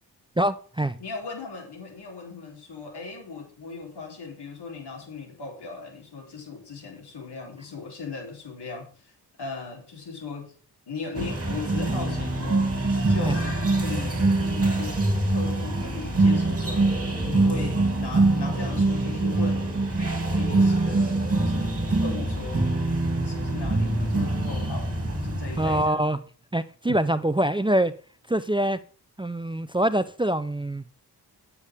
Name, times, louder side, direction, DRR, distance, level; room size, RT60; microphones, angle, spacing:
voice 1, 0.4-1.0 13.3-13.4 25.6-26.2 26.5-27.9 28.3-28.8 29.2-30.8, right 1 dB, 10° right, 0.6 m, -24 dB
voice 2, 1.0-9.1 9.4-10.5 10.9-12.7 13.1-15.0 15.3-19.8 20.4-22.6 23.2-26.1 26.9-27.0, left 4 dB, 70° left, 3.4 m, -38 dB
sound 1, 11.1-25.9, right 2 dB, 35° right, 2.7 m, -24 dB
9.6 x 8.5 x 3.6 m
cardioid pair, 45°, 41 cm